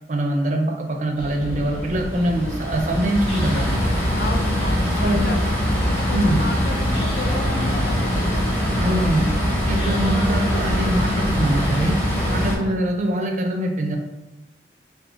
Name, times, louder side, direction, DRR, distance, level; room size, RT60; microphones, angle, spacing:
voice 1, 0.1-3.7 5.0-5.3 6.1-6.4 8.8-14.0, right 1 dB, 40° right, 2 dB, 0.4 m, -23 dB
sound 1, 1.2-11.9, equal, 30° left, 1.0 m, -32 dB
sound 2, 1.7-12.6, equal, 10° left, 0.6 m, -23 dB
voice 2, 4.1-8.7 12.5-12.8, left 2 dB, 55° left, 5 dB, 0.3 m, -33 dB
3.7 x 2.7 x 2.3 m, 1.0 s
head